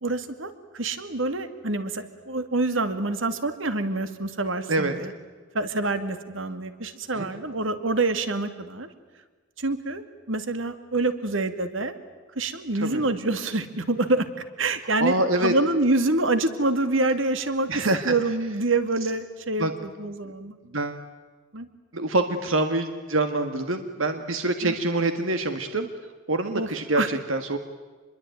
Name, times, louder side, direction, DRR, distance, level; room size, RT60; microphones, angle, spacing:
voice 1, 0.0-5.1 5.5-8.9 9.6-12.0 12.4-14.3 14.6-15.1 15.4-17.7 18.0-20.5 21.5-21.7 24.6-24.8 26.5-26.7 27.0-27.1, right 2 dB, 70° right, 10 dB, 2.3 m, -26 dB
voice 2, 15.0-15.5 17.7-18.1 19.6-19.7 20.7-21.0 21.9-25.9 26.3-27.6, right 2 dB, 90° right, 7 dB, 1.8 m, -25 dB
27.5 x 22.5 x 9.3 m, 1.4 s
head